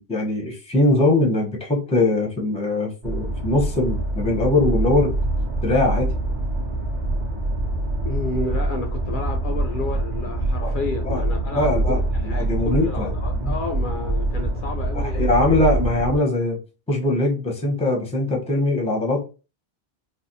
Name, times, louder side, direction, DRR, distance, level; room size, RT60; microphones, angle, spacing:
voice 1, 0.1-5.1 5.6-6.1 10.6-10.8 11.0-11.2 11.5-13.5 14.9-16.6 16.9-19.2, left 2 dB, 5° left, 0.6 m, -21 dB
sound 1, 3.0-16.2, right 1 dB, 35° right, 0.5 m, -25 dB
voice 2, 8.0-15.3, left 3 dB, 60° left, 0.6 m, -31 dB
3.3 x 2.2 x 2.6 m
omnidirectional pair, 1.1 m